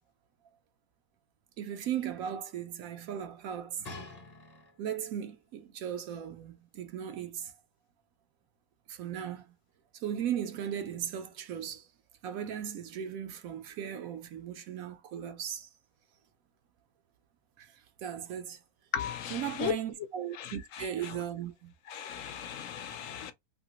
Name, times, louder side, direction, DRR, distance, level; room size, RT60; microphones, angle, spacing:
voice 1, 1.6-3.9 4.8-7.5 8.9-9.5 9.9-11.9 12.2-15.7 17.6-17.8 18.0-18.6 19.3-21.7, right 9 dB, 75° right, 1.0 m, -37 dB
sound 1, 3.8-5.1 5.9-6.0, left 2 dB, 35° left, 0.7 m, -46 dB
voice 2, 18.9-19.7 20.4-20.5 21.9-23.3, left 9 dB, 65° left, 1.0 m, -35 dB
2.8 x 2.8 x 2.8 m
omnidirectional pair, 1.6 m